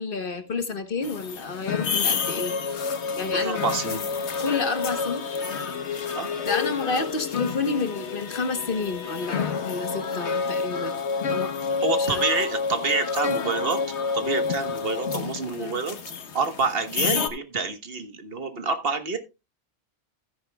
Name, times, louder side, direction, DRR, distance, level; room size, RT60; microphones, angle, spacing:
voice 1, 0.0-2.6 3.2-4.0 4.4-5.2 6.5-11.0 11.3-12.2 15.6-15.8, left 4 dB, 55° left, 1.3 m, -30 dB
sound 1, 1.0-17.3, left 5 dB, 80° left, 1.4 m, -29 dB
voice 2, 3.3-4.0 6.1-6.3 11.8-13.8 14.1-16.0 16.3-19.2, right 4 dB, 60° right, 1.4 m, -27 dB
14.0 x 10.0 x 2.2 m
omnidirectional pair, 1.1 m